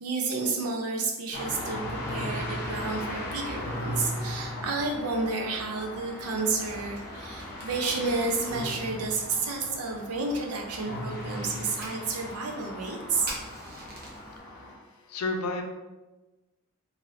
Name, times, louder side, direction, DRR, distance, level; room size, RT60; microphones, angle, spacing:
voice 1, 0.0-13.3, right 3 dB, 85° right, 1 dB, 0.6 m, -31 dB
sound 1, 1.3-14.7, left 1 dB, 40° left, 0.8 m, -37 dB
Fire, 6.0-14.4, right 2 dB, 45° right, 0.8 m, -48 dB
voice 2, 13.9-15.6, left 3 dB, 80° left, 3 dB, 0.5 m, -35 dB
3.1 x 2.7 x 2.7 m, 1.1 s
head